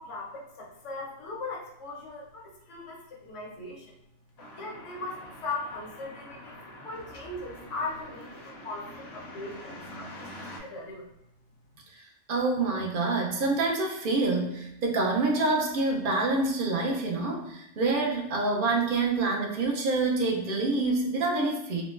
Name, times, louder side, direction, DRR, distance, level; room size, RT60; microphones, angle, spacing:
voice 1, 0.0-3.9 4.5-11.1, left 3 dB, 80° left, -3 dB, 1.1 m, -39 dB
sound 1, 4.4-10.6, left 1 dB, 65° left, 0.8 m, -45 dB
voice 2, 12.3-21.8, right 3 dB, 55° right, 0 dB, 0.6 m, -27 dB
3.6 x 2.0 x 2.4 m, 0.82 s
omnidirectional pair, 1.2 m